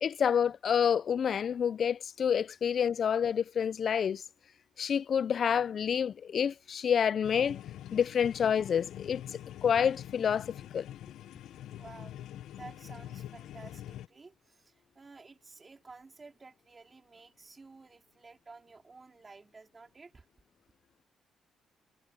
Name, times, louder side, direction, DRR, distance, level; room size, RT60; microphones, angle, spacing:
voice 1, 0.0-4.2 4.8-7.6 7.9-9.2 9.6-10.5 10.7-10.9, left 7 dB, 40° left, 0.3 m, -28 dB
sound 1, 7.2-14.1, left 12 dB, 75° left, 0.7 m, -45 dB
voice 2, 11.8-12.2 12.5-20.3, right 3 dB, 20° right, 3.4 m, -52 dB
cardioid pair, 150°, 0 cm